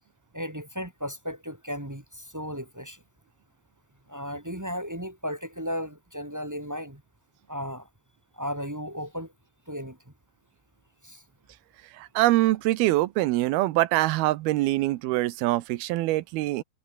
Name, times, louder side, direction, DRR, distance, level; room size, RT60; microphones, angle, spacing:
voice 1, 0.3-3.0 4.1-7.0 7.5-7.9 8.3-9.3 9.7-10.0 11.0-11.2, equal, 10° right, 1.1 m, -35 dB
voice 2, 11.9-16.6, right 17 dB, 80° right, 2.6 m, -24 dB
omnidirectional pair, 4.7 m